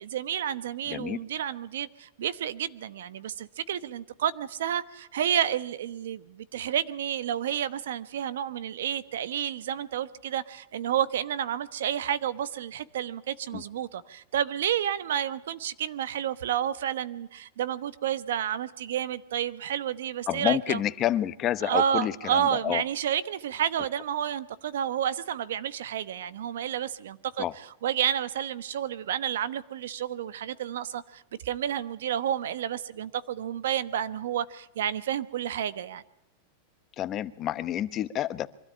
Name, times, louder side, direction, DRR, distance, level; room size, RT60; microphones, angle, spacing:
voice 1, 0.0-20.8 21.6-27.4 27.8-36.0, right 9 dB, 85° right, 15 dB, 1.1 m, -30 dB
voice 2, 0.8-1.2 13.5-13.6 20.3-22.8 27.4-27.5 37.0-38.5, left 12 dB, 30° left, 13 dB, 0.9 m, -29 dB
24.0 x 13.0 x 8.9 m, 0.87 s
supercardioid pair, 140°, 0 cm